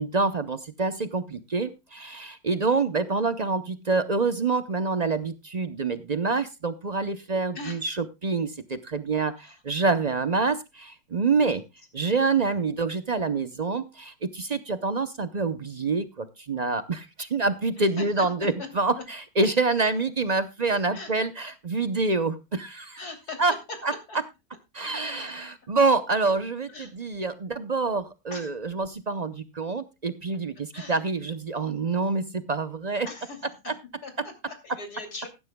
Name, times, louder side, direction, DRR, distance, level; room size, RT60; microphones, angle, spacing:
voice 1, 0.0-11.6 11.9-23.0 23.4-23.5 23.8-23.9 24.7-33.1 33.7-33.8, right 3 dB, 45° right, 12 dB, 0.5 m, -26 dB
voice 2, 17.7-18.3 18.6-18.7 19.0-19.1 20.9-21.1 23.0-23.8 24.1-24.2 26.7-26.9 28.3-28.5 30.7-31.0 33.0-33.4 34.0-35.3, left 3 dB, 60° left, 6 dB, 3.4 m, -39 dB
15.0 x 12.5 x 2.2 m, 0.25 s
omnidirectional pair, 1.9 m